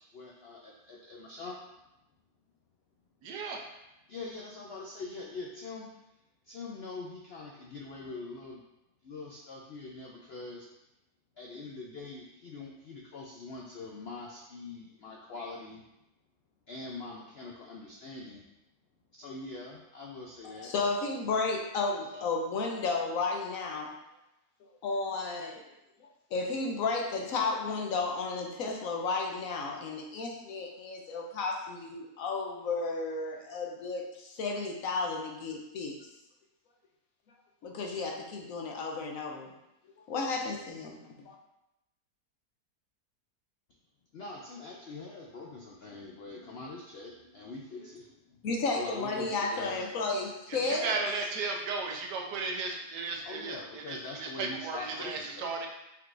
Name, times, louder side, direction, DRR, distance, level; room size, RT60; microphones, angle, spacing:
voice 1, 0.1-1.6 4.1-5.9 6.4-8.6 9.0-10.7 11.4-15.8 16.7-18.4 19.2-20.7 22.1-22.3 44.1-48.4 48.7-50.2 53.2-55.5, left 3 dB, 85° left, -1 dB, 0.5 m, -43 dB
voice 2, 3.2-3.6 50.5-55.7, right 4 dB, 85° right, 1 dB, 1.4 m, -35 dB
voice 3, 20.4-23.9 24.8-25.7 26.3-36.0 37.6-39.5 40.1-41.4 48.4-50.9, left 3 dB, 65° left, 1 dB, 0.9 m, -33 dB
5.5 x 3.7 x 2.5 m, 0.89 s
omnidirectional pair, 1.7 m